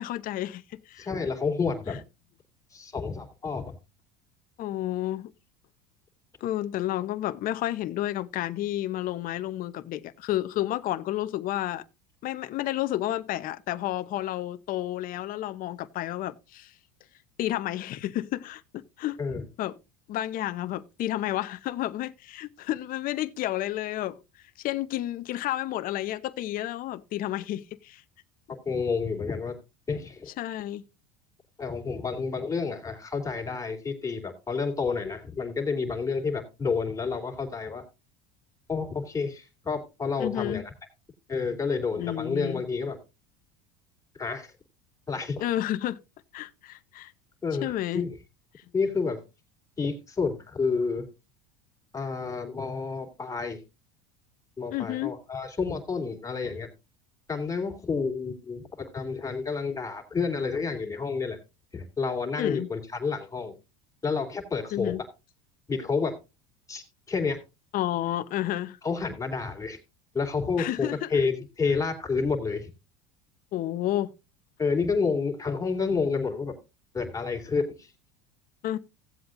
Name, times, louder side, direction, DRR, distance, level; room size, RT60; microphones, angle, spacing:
voice 1, 0.0-1.1 4.6-5.3 6.4-11.8 12.2-16.7 17.4-19.2 19.6-19.8 20.1-24.2 24.6-28.0 30.4-30.8 40.2-40.6 41.9-42.6 45.4-46.0 46.3-47.1 47.6-48.0 54.7-55.1 62.4-62.7 64.7-65.0 67.7-68.8 70.6-71.1 73.5-74.1 78.6-78.8, left 13 dB, 45° left, 0.8 m, -31 dB
voice 2, 1.0-2.0 2.7-3.7 19.2-19.4 28.5-29.6 29.9-30.3 31.6-37.8 38.7-40.7 41.3-43.0 44.1-44.5 45.1-45.4 47.4-48.2 48.7-49.2 49.8-51.1 51.9-53.6 54.6-56.7 57.3-61.4 61.7-63.5 64.0-64.9 65.7-66.1 66.7-67.4 68.8-69.8 70.1-72.7 74.6-76.5 76.9-77.9, left 4 dB, 15° left, 2.8 m, -29 dB
16.5 x 7.8 x 2.5 m
supercardioid pair, 100°, 19 cm